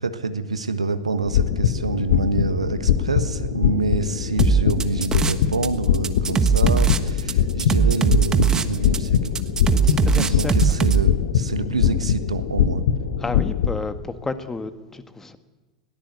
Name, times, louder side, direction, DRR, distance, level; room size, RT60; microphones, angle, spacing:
voice 1, 0.0-9.4 10.0-12.8, right 3 dB, 85° right, 10 dB, 1.4 m, -27 dB
sound 1, 1.2-13.8, left 9 dB, 65° left, 1.5 m, -22 dB
sound 2, 4.4-5.7 5.9-11.0, right 6 dB, 20° right, 1.3 m, -20 dB
voice 2, 9.7-10.8 13.2-15.4, left 3 dB, 10° left, 9 dB, 1.7 m, -31 dB
21.0 x 17.5 x 8.3 m, 1.2 s
figure-of-eight pair, 90°, 3 cm